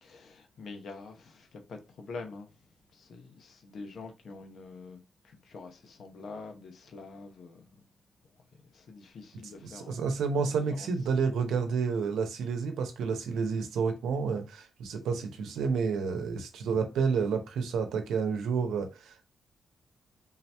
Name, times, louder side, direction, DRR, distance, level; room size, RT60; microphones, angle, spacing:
voice 1, 0.0-2.5 2.9-5.0 5.2-7.6 8.7-10.0 10.4-10.9, left 3 dB, 70° left, 0.9 m, -45 dB
voice 2, 9.6-19.3, right 5 dB, 90° right, 0.7 m, -30 dB
3.8 x 2.8 x 3.4 m
cardioid pair, 85°, 0 cm